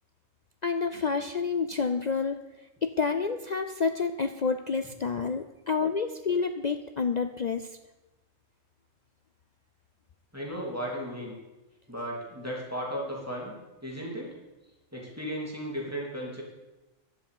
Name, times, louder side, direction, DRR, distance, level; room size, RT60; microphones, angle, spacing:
voice 1, 0.6-7.8, left 5 dB, 55° left, 8 dB, 0.5 m, -29 dB
voice 2, 10.3-11.3 11.9-13.5 13.8-14.3 14.9-16.4, equal, 10° right, -4 dB, 2.9 m, -35 dB
11.5 x 7.8 x 8.6 m, 1.1 s
omnidirectional pair, 1.4 m